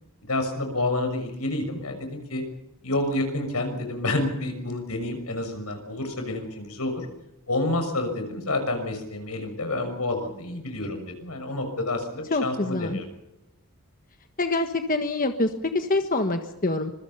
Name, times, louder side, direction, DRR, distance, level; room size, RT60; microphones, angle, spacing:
voice 1, 0.2-2.4 2.8-7.1 7.5-13.0, left 2 dB, 90° left, 6 dB, 6.5 m, -29 dB
voice 2, 12.3-13.0 14.4-16.9, left 2 dB, 40° left, 6 dB, 1.4 m, -25 dB
25.5 x 23.0 x 5.7 m, 0.91 s
head